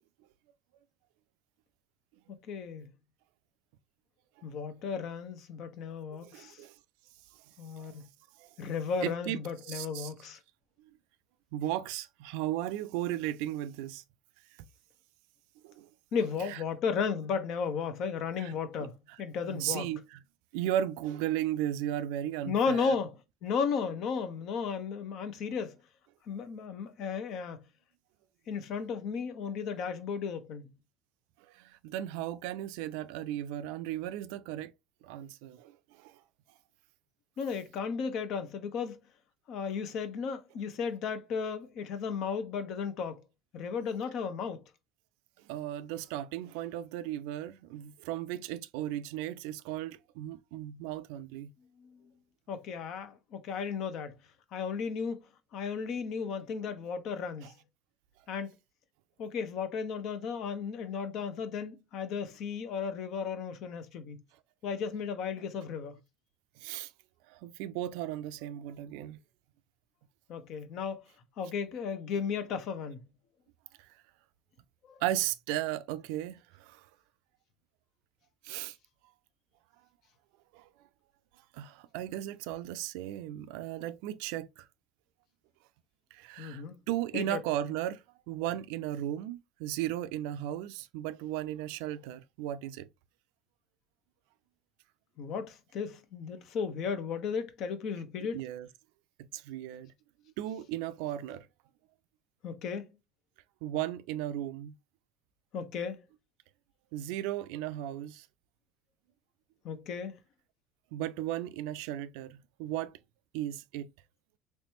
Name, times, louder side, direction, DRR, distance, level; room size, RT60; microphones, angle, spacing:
voice 1, 2.3-2.9 4.4-6.6 7.6-8.0 8.6-10.4 16.1-19.9 22.4-23.2 23.4-25.8 26.3-27.6 28.5-30.7 37.4-39.0 39.5-43.2 43.5-44.6 51.8-52.1 52.5-54.1 54.5-55.2 55.5-57.5 58.3-58.5 59.2-64.2 64.6-66.0 70.3-71.0 71.4-73.0 74.8-75.0 86.4-86.8 87.1-87.4 95.2-98.4 102.4-102.9 105.5-106.0 109.6-110.2, left 6 dB, 60° left, 0.8 m, -34 dB
voice 2, 6.1-6.7 7.8-7.9 8.4-8.5 9.0-10.1 11.5-14.0 15.6-15.9 16.5-16.6 18.4-18.5 18.8-18.9 19.4-20.0 20.5-22.9 31.5-34.7 35.0-35.7 36.0-36.1 45.5-51.5 66.6-66.9 67.3-69.2 75.0-76.8 78.4-78.8 80.5-80.7 81.5-84.7 86.1-92.9 98.3-98.7 99.2-99.9 100.4-101.5 103.6-104.7 106.9-108.3 110.9-112.9 113.3-113.9, right 12 dB, 80° right, 0.3 m, -36 dB
3.2 x 3.2 x 2.9 m
supercardioid pair, 90°, 0 cm